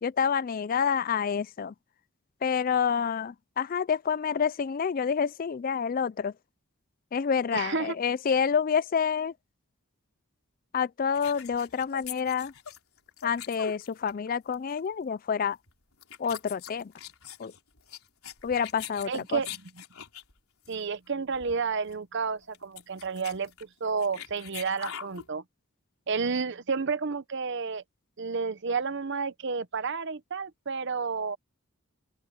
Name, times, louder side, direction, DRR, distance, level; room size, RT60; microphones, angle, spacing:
voice 1, 0.0-1.7 2.4-6.3 7.1-9.3 10.7-12.5 13.2-15.6 16.2-16.9 17.4-17.5 18.4-19.4, left 6 dB, 40° left, 0.4 m, -28 dB
voice 2, 7.5-8.0 19.1-19.8 20.7-23.5 23.8-25.4 26.1-27.8 28.2-31.4, right 5 dB, 55° right, 0.8 m, -31 dB
sound 1, 11.1-14.3 14.5-14.8 15.5-15.7 16.0-20.3 20.6-20.8 21.1-21.2 21.3-21.6 21.9-22.0 22.4-25.3, left 9 dB, 90° left, 3.7 m, -43 dB
open air
head